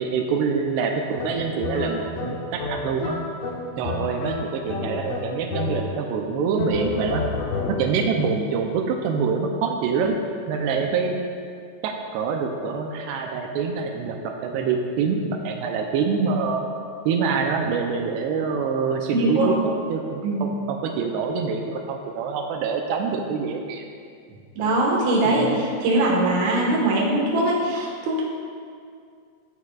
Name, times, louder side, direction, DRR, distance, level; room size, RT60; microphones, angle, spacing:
voice 1, 0.0-3.2 3.8-7.2 7.7-10.2 10.5-11.2 11.8-16.6 17.1-19.6 19.9-23.8 25.3-25.5, right 5 dB, 85° right, 3 dB, 2.8 m, -25 dB
sound 1, 1.2-6.1 6.6-8.1, left 3 dB, 75° left, 1.7 m, -30 dB
voice 2, 19.1-19.6 20.2-20.5 24.6-28.2, right 1 dB, 55° right, -3 dB, 2.3 m, -21 dB
15.5 x 8.2 x 2.4 m, 2.2 s
omnidirectional pair, 4.8 m